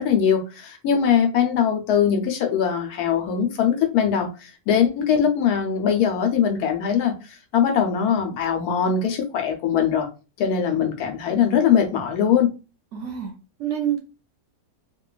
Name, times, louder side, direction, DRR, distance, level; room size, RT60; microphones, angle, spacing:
voice 1, 0.0-10.1 10.4-12.5, left 8 dB, 85° left, 1.1 m, -21 dB
voice 2, 12.9-13.3 13.6-14.0, right 10 dB, 65° right, 0.8 m, -26 dB
2.9 x 2.2 x 2.3 m
omnidirectional pair, 1.6 m